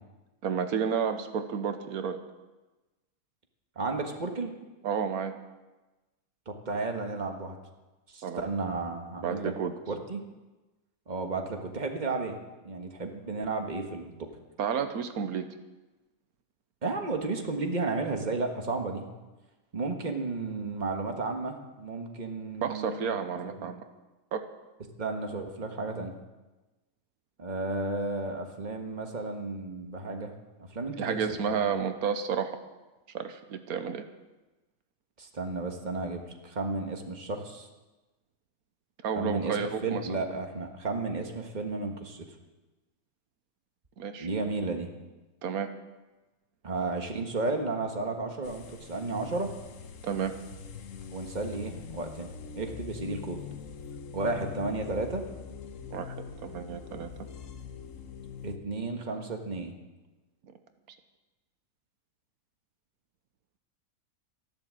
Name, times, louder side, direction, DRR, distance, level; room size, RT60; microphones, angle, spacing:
voice 1, 0.4-2.3 4.8-5.4 8.2-8.4 9.2-9.7 14.6-15.4 22.6-23.8 24.3-24.4 31.0-32.6 33.1-34.0 39.0-40.1 44.0-44.3 45.4-45.7 50.0-50.3 55.9-56.2 56.4-57.1, right 7 dB, 90° right, 9 dB, 1.4 m, -31 dB
voice 2, 3.7-4.5 6.5-7.6 8.1-9.5 9.9-10.2 11.1-12.4 12.6-14.3 16.8-19.1 19.7-23.7 25.0-26.1 27.4-30.3 30.6-31.2 31.5-31.6 35.2-37.7 39.1-42.3 44.2-44.9 46.6-49.5 51.1-53.4 54.1-55.2 58.4-59.7, right 3 dB, 30° right, 4 dB, 1.6 m, -33 dB
sound 1, 48.4-58.6, left 6 dB, 65° left, 1.3 m, -43 dB
13.5 x 11.5 x 7.6 m, 1.1 s
omnidirectional pair, 1.5 m